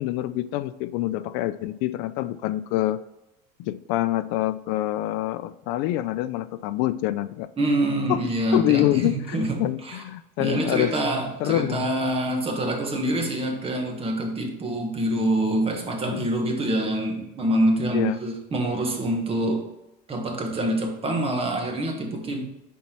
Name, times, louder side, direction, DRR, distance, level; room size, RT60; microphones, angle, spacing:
voice 1, 0.0-3.0 3.6-7.5 8.1-10.9 11.4-11.9 16.0-16.3 17.9-18.2, left 15 dB, 75° left, 14 dB, 0.4 m, -26 dB
voice 2, 7.6-10.0 10.4-19.7 20.1-22.5, right 1 dB, 25° right, 2 dB, 1.4 m, -26 dB
5.5 x 4.3 x 4.5 m, 0.91 s
supercardioid pair, 120°, 21 cm